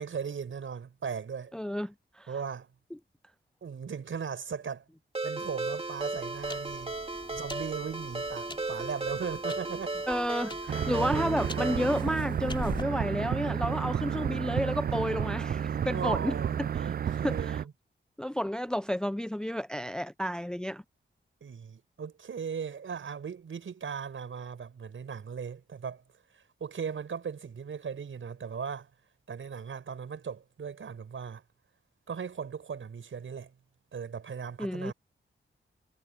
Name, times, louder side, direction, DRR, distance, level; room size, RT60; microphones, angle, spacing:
voice 1, 0.0-1.5 2.3-2.7 3.6-4.8 5.2-7.0 7.3-10.0 15.8-17.7 21.4-26.0 26.3-28.9 29.3-31.4 32.1-33.5 33.9-34.9, right 6 dB, 75° right, 6.2 m, -38 dB
voice 2, 1.5-2.3 10.1-16.3 16.8-16.9 17.2-17.6 18.2-20.8 34.6-34.9, equal, 5° left, 0.5 m, -31 dB
Ringtone, 5.1-12.0, right 2 dB, 30° right, 2.3 m, -35 dB
sound 1, 5.4-12.8, left 2 dB, 25° left, 3.2 m, -45 dB
sound 2, 10.7-17.6, right 8 dB, 50° right, 0.4 m, -31 dB
cardioid pair, 60°, 21 cm